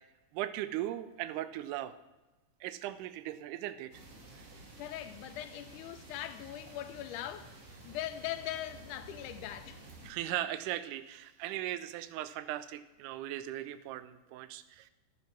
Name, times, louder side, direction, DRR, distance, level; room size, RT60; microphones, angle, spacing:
voice 1, 0.3-1.9 2.6-3.9 10.0-14.9, right 13 dB, 80° right, 2.1 m, -38 dB
sound 1, 3.9-10.1, right 2 dB, 55° right, 2.5 m, -52 dB
voice 2, 4.8-10.1, left 12 dB, 80° left, 2.1 m, -41 dB
11.0 x 7.6 x 5.9 m
omnidirectional pair, 3.7 m